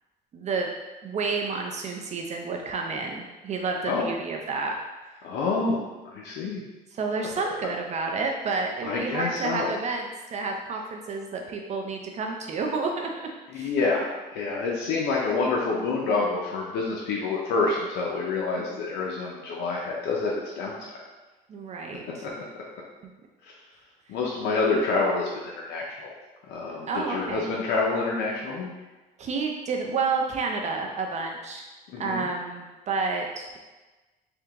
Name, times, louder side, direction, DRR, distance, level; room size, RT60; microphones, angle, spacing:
voice 1, 0.3-0.7 1.0-4.7 5.0-5.2 6.9-13.3 13.5-13.7 18.7-18.8 21.5-22.3 23.0-23.1 26.9-27.5 29.2-31.7 32.0-33.6, right 4 dB, 45° right, 2 dB, 0.5 m, -30 dB
voice 2, 5.2-5.8 6.1-6.6 8.8-9.7 13.5-20.7 22.2-22.3 24.1-26.1 26.5-28.7 31.9-32.2, left 3 dB, 85° left, -3 dB, 0.6 m, -27 dB
3.5 x 2.8 x 3.5 m, 1.2 s
cardioid pair, 110°, 17 cm